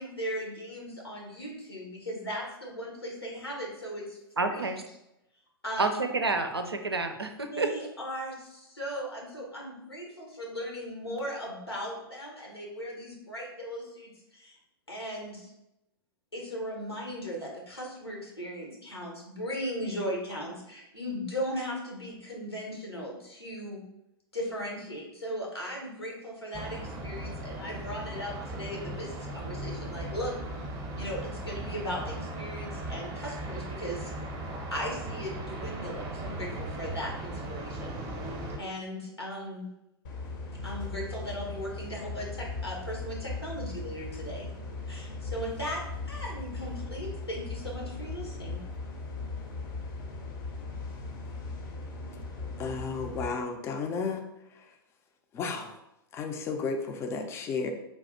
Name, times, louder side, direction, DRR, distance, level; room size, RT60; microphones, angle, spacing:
voice 1, 0.0-5.0 5.6-6.0 7.5-14.6 14.9-15.5 16.3-23.8 24.3-30.3 31.0-34.1 34.7-38.0 38.6-39.6 40.6-44.5 44.9-45.8 46.1-48.6, equal, 85° left, -2 dB, 1.1 m, -37 dB
voice 2, 4.4-4.8 5.8-7.7, right 3 dB, 85° right, 6 dB, 0.4 m, -29 dB
sound 1, 26.5-38.6, right 1 dB, 30° right, 0.7 m, -38 dB
sound 2, 40.0-53.3, left 3 dB, 55° left, 0.7 m, -38 dB
voice 3, 52.6-54.2 54.5-54.7 55.3-55.8 56.1-57.7, left 4 dB, 20° left, 5 dB, 0.4 m, -33 dB
3.3 x 2.3 x 4.0 m, 0.87 s
figure-of-eight pair, 95°, 13 cm